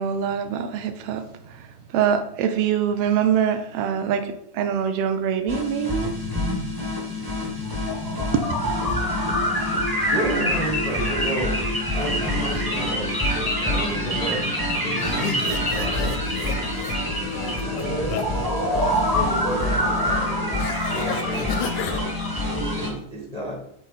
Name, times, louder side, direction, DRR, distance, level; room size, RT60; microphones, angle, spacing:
voice 1, 0.0-6.2 8.3-8.4, right 8 dB, 75° right, 8 dB, 1.4 m, -24 dB
sound 1, 5.5-22.9, left 1 dB, 15° right, 0.7 m, -25 dB
voice 2, 10.0-11.6 11.9-14.5 14.8-18.8 19.1-22.0 22.4-23.5, right 1 dB, 60° left, -4 dB, 0.4 m, -32 dB
sound 2, 15.0-18.2 18.6-19.1 20.6-22.0, left 8 dB, 85° left, 1.9 m, -33 dB
8.1 x 4.3 x 4.1 m, 0.74 s
omnidirectional pair, 3.3 m